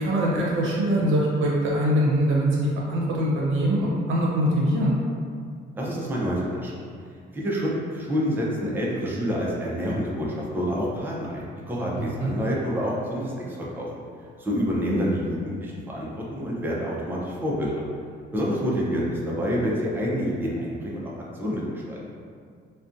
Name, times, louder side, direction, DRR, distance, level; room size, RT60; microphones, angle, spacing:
voice 1, 0.0-4.9 11.9-12.3, equal, 80° right, -4 dB, 0.6 m, -23 dB
voice 2, 5.7-6.7 7.3-14.0 14.4-17.8 18.3-21.1 21.4-22.0, equal, 10° right, -5 dB, 0.5 m, -27 dB
2.5 x 2.2 x 2.4 m, 2.2 s
cardioid pair, 90°, 20 cm